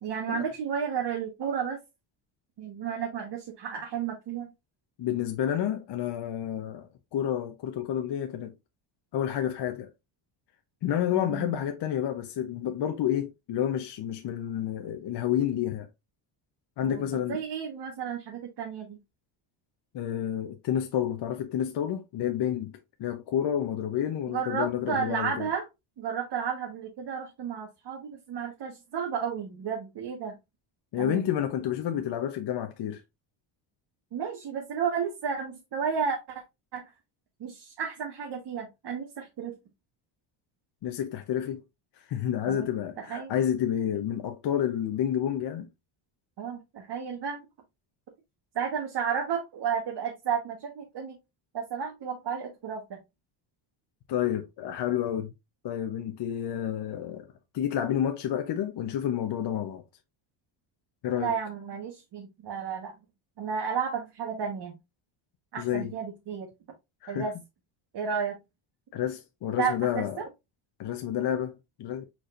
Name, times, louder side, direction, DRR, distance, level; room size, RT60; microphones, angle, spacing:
voice 1, 0.0-1.8 2.6-4.5 11.1-11.5 16.8-17.0 17.3-19.0 24.3-25.6 26.0-30.4 31.0-31.2 34.1-36.4 36.7-36.9 37.4-39.6 42.4-42.7 43.0-43.3 46.4-47.4 48.5-51.2 51.5-53.0 61.1-62.9 63.4-64.8 65.5-66.5 67.1-67.3 67.9-68.4 69.6-70.3, right 7 dB, 55° right, 1.4 m, -32 dB
voice 2, 5.0-8.5 9.1-9.9 10.8-15.9 16.8-17.4 19.9-22.7 23.0-25.5 30.9-33.0 40.8-41.6 42.0-45.7 54.1-55.3 55.6-57.2 57.5-59.8 61.0-61.3 65.6-65.9 67.0-67.3 68.9-70.2 70.8-72.1, left 10 dB, 55° left, 0.9 m, -29 dB
4.7 x 4.4 x 2.5 m
cardioid pair, 90°, 50 cm